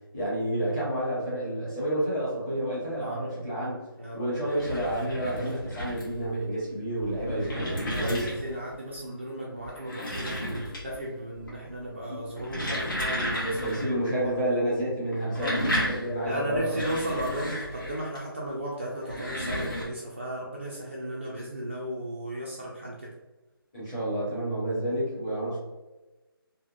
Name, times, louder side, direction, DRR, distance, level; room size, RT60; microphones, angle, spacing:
voice 1, 0.1-3.8 4.1-8.3 12.1-12.2 13.4-16.8 23.7-25.6, right 1 dB, 15° left, -10 dB, 0.8 m, -30 dB
voice 2, 3.0-3.4 4.0-4.2 7.3-14.3 15.3-15.8 16.3-23.1, right 1 dB, 30° right, -5 dB, 0.4 m, -35 dB
sound 1, 4.3-6.3 6.9-8.6 9.6-11.1 11.3-11.8 12.3-13.9 14.2-14.3 15.1-18.2 18.9-19.8, equal, 60° left, 1.3 m, -33 dB
3.4 x 2.1 x 2.4 m, 1.1 s
figure-of-eight pair, 170°, 13 cm